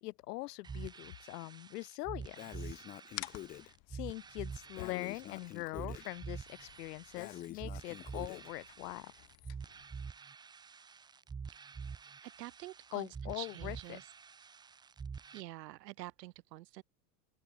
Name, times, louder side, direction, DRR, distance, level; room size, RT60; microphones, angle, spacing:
voice 1, 0.0-2.8 3.6-9.1 12.9-14.0, left 20 dB, 65° left, 1.1 m, -43 dB
sound 1, 0.6-15.4, right 5 dB, 10° right, 1.1 m, -47 dB
Breathing, 2.4-3.7 4.8-6.1 7.2-8.5, left 13 dB, 15° left, 0.8 m, -47 dB
sound 2, 3.1-10.1, left 30 dB, 40° left, 6.0 m, -53 dB
voice 2, 12.2-14.1 15.3-16.8, right 17 dB, 75° right, 3.3 m, -47 dB
open air
supercardioid pair, 180°, 50 cm